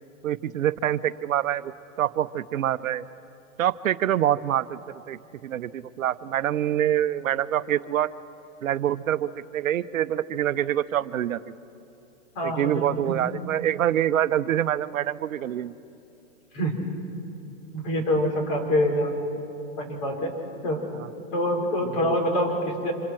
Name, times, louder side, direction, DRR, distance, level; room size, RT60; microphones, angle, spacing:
voice 1, 0.2-1.7 2.0-3.0 3.6-4.8 5.1-8.1 8.6-11.4 12.4-15.7 20.9-21.1, right 11 dB, 85° right, 14 dB, 0.7 m, -25 dB
voice 2, 12.3-13.2 16.5-16.8 17.7-19.1 19.8-20.3 20.6-20.8 21.3-22.9, equal, 40° left, 1 dB, 4.9 m, -25 dB
26.5 x 26.5 x 4.5 m, 2.7 s
hypercardioid pair, 135°, 40 cm